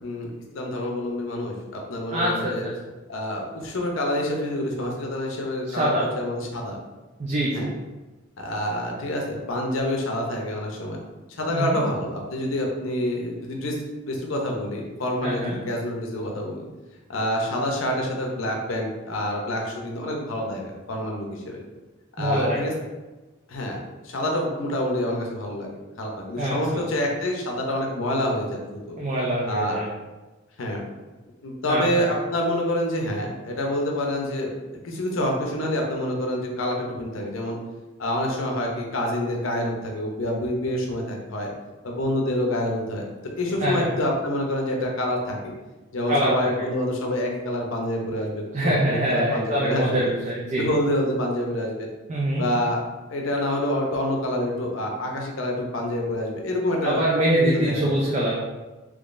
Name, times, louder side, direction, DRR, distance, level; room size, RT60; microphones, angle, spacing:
voice 1, 0.0-2.7 3.1-6.8 7.5-7.7 8.4-11.0 11.4-13.8 14.1-16.6 17.1-20.6 20.9-21.6 22.2-22.7 23.5-23.8 24.0-25.7 26.0-29.0 29.5-29.8 30.6-30.8 31.4-34.5 34.8-37.6 38.0-41.5 41.8-43.0 43.4-45.5 45.9-50.1 50.6-51.9 52.4-52.8 53.1-57.0 57.3-58.0, left 1 dB, 85° left, 0 dB, 0.7 m, -27 dB
voice 2, 2.1-2.7 5.7-6.1 7.2-7.7 11.5-11.8 15.2-15.6 22.2-22.6 26.4-26.5 29.0-29.9 31.7-32.1 43.6-43.9 46.1-46.5 48.5-50.7 52.1-52.4 56.8-58.3, right 1 dB, 35° right, -5 dB, 0.5 m, -24 dB
3.8 x 3.0 x 2.5 m, 1.2 s
head